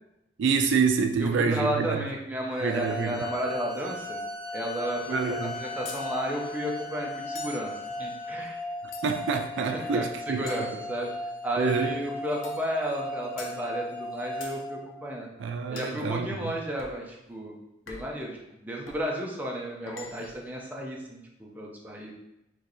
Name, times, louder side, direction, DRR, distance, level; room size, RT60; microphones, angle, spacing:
voice 1, 0.4-2.1 2.6-3.3 5.1-5.6 9.0-10.5 11.6-12.0 15.4-16.5, right 5 dB, 70° right, 6 dB, 0.3 m, -27 dB
voice 2, 1.2-4.2 4.5-7.7 8.0-8.6 9.7-11.1 11.4-15.3 15.7-17.6 17.9-22.1, equal, 10° right, -2 dB, 0.6 m, -33 dB
sound 1, 2.5-15.5, left 1 dB, 25° right, 1.1 m, -37 dB
sound 2, 2.6-8.3, left 3 dB, 35° left, 1.6 m, -43 dB
sound 3, 5.9-6.1 7.4-7.7 8.9-9.4 10.5-11.4 12.4-12.7 13.4-13.6 14.4-14.6 15.8-16.0 16.8-17.0 17.9-18.2 18.9-19.1 19.9-20.5, left 4 dB, 85° left, 0.6 m, -44 dB
4.5 x 3.0 x 3.1 m, 0.89 s
head